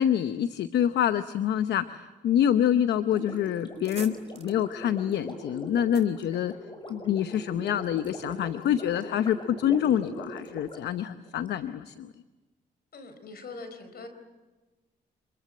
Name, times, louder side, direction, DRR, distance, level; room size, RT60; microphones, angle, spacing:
voice 1, 0.0-6.5 6.9-12.1, left 10 dB, 80° left, 11 dB, 0.8 m, -26 dB
Gurgling, 3.1-11.5, equal, 25° left, 6.0 m, -42 dB
sound 1, 3.7-7.2, right 5 dB, 40° right, 2.8 m, -48 dB
voice 2, 12.9-14.1, left 3 dB, 65° left, 9 dB, 4.6 m, -42 dB
27.0 x 22.5 x 7.8 m, 1.2 s
cardioid pair, 75°, 18 cm